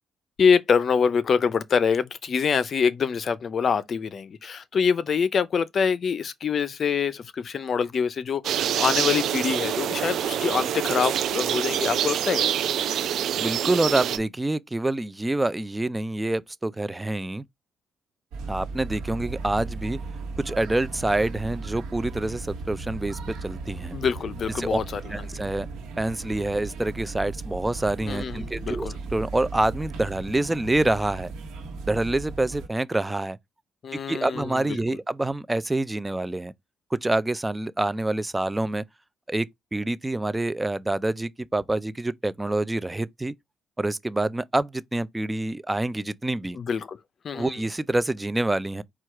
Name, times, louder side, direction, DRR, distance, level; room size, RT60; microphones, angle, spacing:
voice 1, 0.4-12.5 23.9-25.0 28.1-28.9 33.8-34.8 46.6-47.0 47.2-47.6, left 6 dB, 50° left, 0.6 m, -25 dB
sound 1, 8.4-14.2, right 10 dB, 70° right, 0.4 m, -26 dB
voice 2, 13.4-17.4 18.5-20.0 20.4-23.9 24.6-24.8 25.1-25.7 26.0-31.3 31.9-33.4 34.1-36.5 36.9-38.8 39.3-43.3 43.8-46.6 47.3-48.8, right 2 dB, 15° right, 0.4 m, -26 dB
sound 2, 18.3-32.7, right 3 dB, 90° right, 1.1 m, -36 dB
4.6 x 2.4 x 4.4 m
cardioid pair, 90°, 0 cm